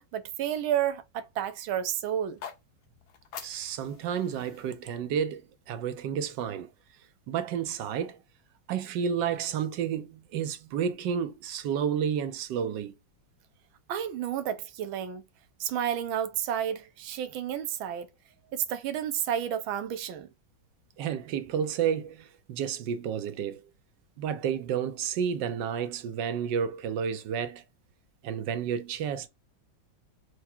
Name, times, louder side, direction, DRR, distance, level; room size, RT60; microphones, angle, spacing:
voice 1, 0.0-2.4 13.9-15.2 15.6-18.1 18.5-20.3, right 10 dB, 85° right, 1.6 m, -31 dB
sound 1, 2.2-6.3, left 8 dB, 80° left, 1.7 m, -48 dB
voice 2, 3.4-5.4 5.7-6.7 7.3-8.2 8.7-12.9 21.0-23.6 24.2-27.6 28.2-29.3, right 8 dB, 70° right, 1.2 m, -31 dB
4.7 x 2.2 x 4.3 m
omnidirectional pair, 2.2 m